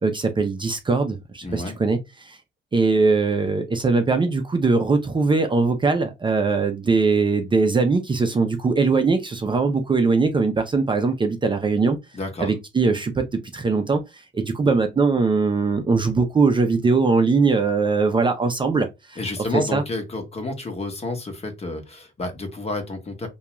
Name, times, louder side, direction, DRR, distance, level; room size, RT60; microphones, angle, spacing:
voice 1, 0.0-2.4 2.7-12.0 12.4-13.2 13.5-19.2 19.7-19.8, right 4 dB, 25° right, 0.5 m, -21 dB
voice 2, 1.4-1.8 12.1-12.5 19.2-23.3, left 2 dB, 30° left, 0.9 m, -30 dB
2.3 x 2.3 x 3.0 m
cardioid pair, 90°, 20 cm